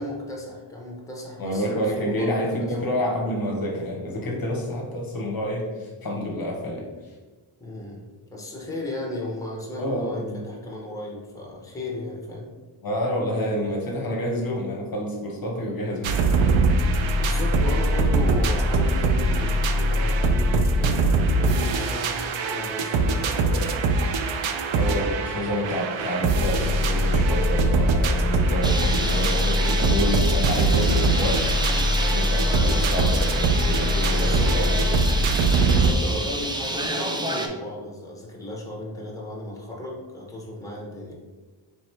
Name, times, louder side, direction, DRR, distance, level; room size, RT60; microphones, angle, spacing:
voice 1, 0.0-2.7 7.6-12.5 17.2-24.0 25.0-25.8 34.1-34.5 35.7-41.1, left 1 dB, 5° left, -2 dB, 1.0 m, -35 dB
voice 2, 1.4-6.9 9.8-10.4 12.8-16.5 24.7-31.4 31.7-34.9, equal, 45° left, -1 dB, 0.9 m, -28 dB
sound 1, 16.0-35.9, right 2 dB, 70° right, 0.6 m, -22 dB
Bird, 28.6-37.5, right 1 dB, 10° right, 0.4 m, -29 dB
3.4 x 3.0 x 4.4 m, 1.3 s
cardioid pair, 90°, 49 cm